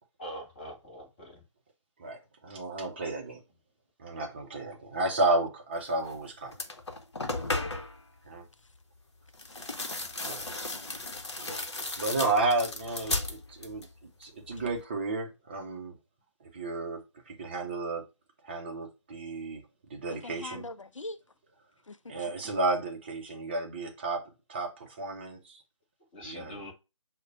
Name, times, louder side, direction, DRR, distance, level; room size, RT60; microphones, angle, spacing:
voice 1, 0.2-1.4 10.3-10.5 26.1-26.7, equal, 20° left, 1.1 m, -43 dB
voice 2, 2.0-3.4 4.0-6.5 8.3-8.4 10.2-10.4 11.4-11.7 12.0-13.9 14.2-15.9 16.5-18.1 18.4-19.6 19.9-20.7 22.1-25.6 26.2-26.6, right 2 dB, 20° right, 0.6 m, -32 dB
sound 1, 6.1-6.2 6.5-8.0 9.3-13.9 14.2-14.8, left 2 dB, 60° left, 0.9 m, -35 dB
voice 3, 9.5-10.3 20.1-21.2 21.8-22.3, left 2 dB, 85° left, 0.5 m, -44 dB
6.3 x 2.2 x 3.8 m
figure-of-eight pair, 150°, 16 cm